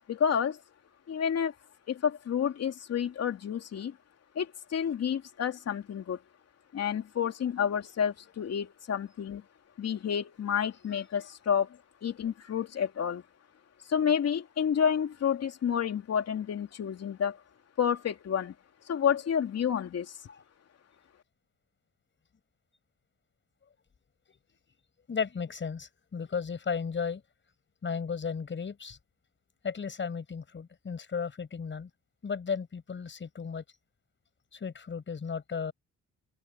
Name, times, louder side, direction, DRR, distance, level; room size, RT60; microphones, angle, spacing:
voice 1, 0.1-0.6 1.1-1.5 1.9-4.0 4.3-6.2 6.7-9.4 9.8-13.2 13.9-17.4 17.8-18.5 18.9-20.2, left 8 dB, 55° left, 3.0 m, -30 dB
voice 2, 25.1-27.2 27.8-29.0 29.6-31.9 32.2-33.6 34.5-35.7, left 6 dB, 40° left, 5.3 m, -34 dB
open air
cardioid pair, 90°, 30 cm